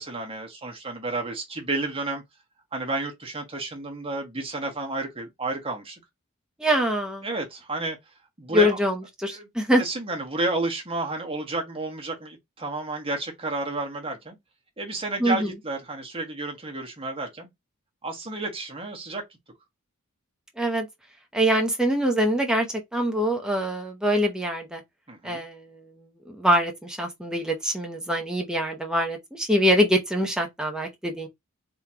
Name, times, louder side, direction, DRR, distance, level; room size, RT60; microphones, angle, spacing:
voice 1, 0.0-2.2 2.7-6.0 7.2-8.0 8.4-8.8 9.3-9.5 9.8-14.4 14.8-17.5 18.0-19.2 25.1-25.4, right 2 dB, 25° right, 1.4 m, -31 dB
voice 2, 6.6-7.3 8.5-9.8 15.2-15.5 20.6-20.9 21.3-24.8 25.2-31.3, equal, 5° right, 0.8 m, -24 dB
3.7 x 3.0 x 2.8 m
head